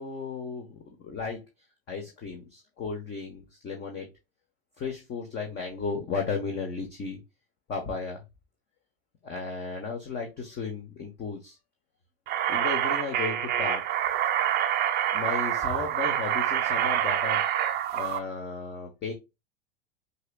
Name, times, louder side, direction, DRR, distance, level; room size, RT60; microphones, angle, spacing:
voice 1, 0.0-1.4 1.9-4.1 4.8-7.2 7.7-8.2 9.2-11.6 12.5-13.8 15.1-17.4 17.9-19.1, left 4 dB, 30° left, 2 dB, 1.3 m, -34 dB
sound 1, 12.3-18.2, right 10 dB, 30° right, 0.7 m, -26 dB
6.3 x 3.0 x 2.4 m, 0.23 s
figure-of-eight pair, 85°, 32 cm